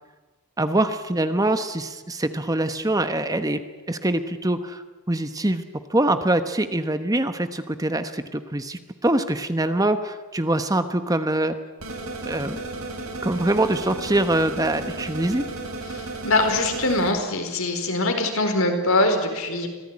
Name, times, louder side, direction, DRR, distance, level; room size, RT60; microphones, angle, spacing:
voice 1, 0.6-3.6 3.9-5.6 5.9-11.6 12.2-12.6 13.2-15.4, right 1 dB, 15° right, 9 dB, 1.1 m, -24 dB
sound 1, 11.8-17.1, right 2 dB, 70° right, 6.6 m, -34 dB
voice 2, 16.2-19.7, left 2 dB, 65° left, 5 dB, 4.6 m, -22 dB
25.5 x 18.0 x 9.8 m, 1.2 s
head